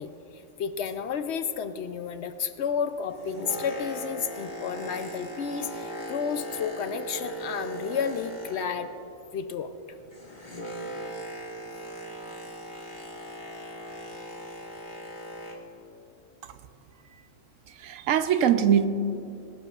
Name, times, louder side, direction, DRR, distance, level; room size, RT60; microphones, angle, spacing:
voice 1, 0.0-8.9 9.3-9.7, left 7 dB, 65° left, 10 dB, 0.8 m, -32 dB
Boat Water vehicle, 2.9-9.0 9.3-15.8 16.4-16.5, right 1 dB, 35° left, 1.6 m, -39 dB
voice 2, 17.7-18.9, right 9 dB, 75° right, 10 dB, 1.0 m, -22 dB
20.0 x 12.0 x 2.4 m, 2.7 s
omnidirectional pair, 1.4 m